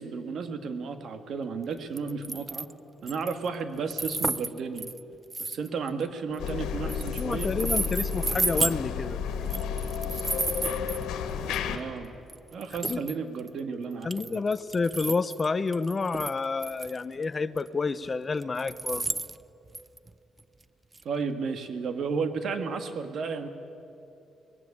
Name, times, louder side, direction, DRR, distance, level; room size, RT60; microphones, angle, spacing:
voice 1, 0.0-2.7 3.0-4.9 5.4-7.5 11.6-12.1 12.5-14.4 21.0-23.5, right 5 dB, 60° right, 9 dB, 1.7 m, -33 dB
sound 1, 2.0-2.7 3.1-3.5 3.9-6.5 6.9-8.7 9.4-11.0 11.5-11.6 12.3-12.4 12.6-13.5 14.0-15.5 15.7-17.0 17.2-17.3 17.5-17.6 18.4-20.1 20.4-20.5 20.9-21.0, right 2 dB, 20° right, 0.4 m, -32 dB
sound 2, 6.4-11.8, left 7 dB, 85° left, 1.7 m, -32 dB
voice 2, 7.2-9.2 12.8-13.0 14.0-19.0, left 4 dB, 30° left, 15 dB, 0.6 m, -29 dB
20.0 x 16.0 x 9.8 m, 2.8 s
cardioid pair, 90°, 0 cm